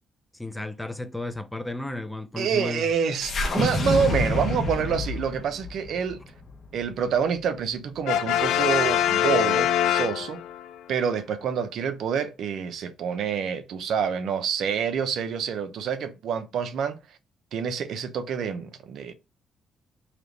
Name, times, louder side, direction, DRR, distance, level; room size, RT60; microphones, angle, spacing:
voice 1, 0.3-2.9, left 2 dB, 5° left, 0.5 m, -33 dB
voice 2, 2.4-6.2 6.7-10.4 10.9-17.0 17.5-19.1, right 7 dB, 70° right, 0.6 m, -27 dB
sound 1, 3.2-7.5, left 2 dB, 45° left, 1.1 m, -28 dB
Brass instrument, 8.1-10.7, left 10 dB, 85° left, 0.4 m, -23 dB
3.3 x 2.9 x 3.9 m
cardioid pair, 90°, 0 cm